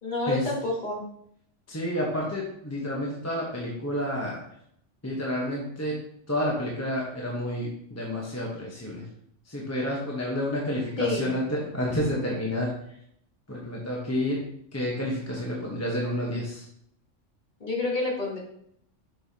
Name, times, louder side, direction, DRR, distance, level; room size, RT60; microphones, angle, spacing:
voice 1, 0.0-1.0 11.0-11.3 17.6-18.4, left 2 dB, 40° left, -3 dB, 1.5 m, -28 dB
voice 2, 1.7-4.4 5.0-6.0 6.3-9.0 9.5-12.7 13.5-14.4 14.7-16.6, left 1 dB, 15° left, -3 dB, 1.0 m, -30 dB
6.9 x 5.5 x 2.8 m, 0.70 s
omnidirectional pair, 1.3 m